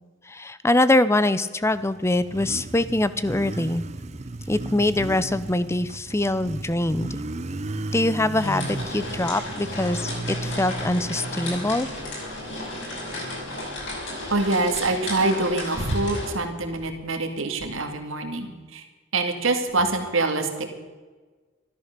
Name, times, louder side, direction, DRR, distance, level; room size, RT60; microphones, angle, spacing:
voice 1, 0.3-3.8 4.5-7.2 7.9-11.9, left 1 dB, 15° left, 15 dB, 0.5 m, -23 dB
Motorcycle, 1.5-14.1, right 2 dB, 35° right, 0.7 m, -35 dB
sound 1, 8.4-16.3, left 1 dB, 60° left, 6.2 m, -34 dB
voice 2, 14.3-18.8 19.1-20.7, right 2 dB, 80° right, 5 dB, 2.1 m, -25 dB
13.5 x 13.0 x 6.7 m, 1.3 s
head